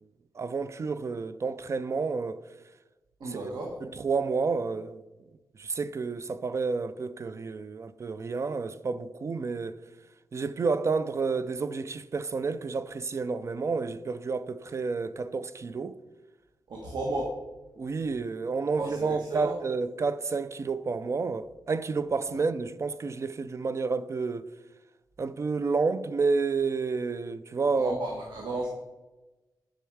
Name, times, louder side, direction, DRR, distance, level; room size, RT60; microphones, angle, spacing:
voice 1, 0.4-2.4 3.2-3.4 3.8-5.0 5.6-9.8 10.3-16.0 17.8-24.5 25.2-27.9, right 4 dB, 40° right, 0.3 m, -30 dB
voice 2, 3.2-3.7 16.7-17.3 18.8-19.5 22.3-22.4 27.8-28.7, right 2 dB, 80° right, 1.3 m, -33 dB
10.0 x 5.4 x 4.6 m
wide cardioid pair, 130°, 7 cm